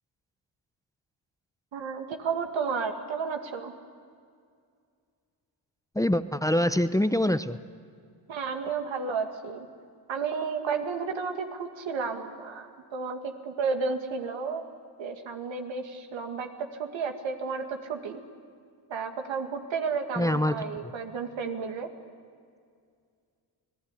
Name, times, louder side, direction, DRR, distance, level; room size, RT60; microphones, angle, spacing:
voice 1, 1.7-3.7 8.3-9.7 10.1-14.6 15.0-16.5 16.8-18.2 18.9-21.9, right 5 dB, 85° right, 4 dB, 2.3 m, -32 dB
voice 2, 5.9-7.6 20.1-20.6 20.8-20.9, left 1 dB, 5° left, 11 dB, 0.9 m, -25 dB
28.5 x 18.0 x 9.9 m, 2.2 s
cardioid pair, 65°, 45 cm